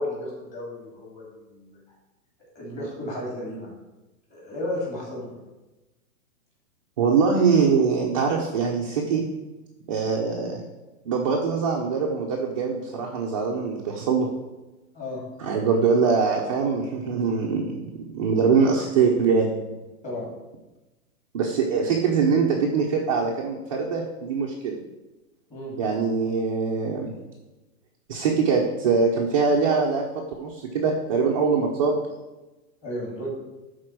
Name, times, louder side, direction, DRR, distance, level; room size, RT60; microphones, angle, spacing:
voice 1, 0.0-1.8 2.5-3.7 4.3-5.4 14.9-15.2 18.3-18.6 20.0-20.3 25.5-25.8 32.8-33.3, left 1 dB, 15° left, -5 dB, 2.9 m, -33 dB
voice 2, 7.0-9.2 9.9-10.6 11.1-14.3 15.4-19.5 21.3-24.8 25.8-27.1 28.1-30.0 30.4-32.0, right 5 dB, 25° right, -2 dB, 0.6 m, -23 dB
11.5 x 4.4 x 6.0 m, 1.1 s
hypercardioid pair, 170°, 45 cm